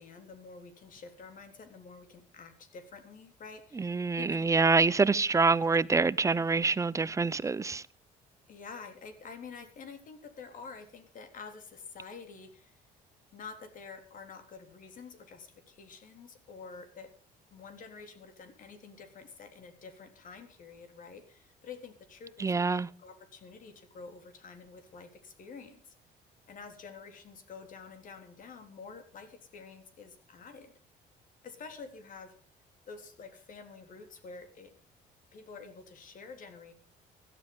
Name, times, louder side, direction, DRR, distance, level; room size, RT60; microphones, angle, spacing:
voice 1, 0.0-4.5 5.0-5.8 6.2-6.4 8.5-12.8 13.3-17.1 17.5-25.9 26.5-30.7 31.4-32.3 32.9-34.7 35.3-36.7, left 5 dB, 50° left, 3.6 m, -48 dB
voice 2, 3.8-7.8 22.4-22.9, right 4 dB, 20° right, 0.6 m, -26 dB
17.0 x 12.0 x 5.4 m
cardioid pair, 110°, 17 cm